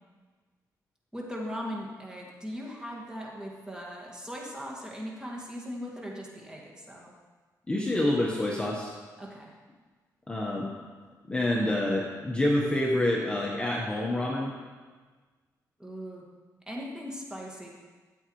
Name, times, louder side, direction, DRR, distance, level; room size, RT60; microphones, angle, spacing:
voice 1, 1.1-7.1 9.2-9.5 15.8-16.2 16.7-17.7, equal, 10° right, -3 dB, 2.0 m, -39 dB
voice 2, 7.7-8.9 10.3-10.7 11.3-14.5, left 1 dB, 15° left, -2 dB, 1.2 m, -27 dB
13.5 x 8.1 x 3.2 m, 1.4 s
cardioid pair, 110°, 7 cm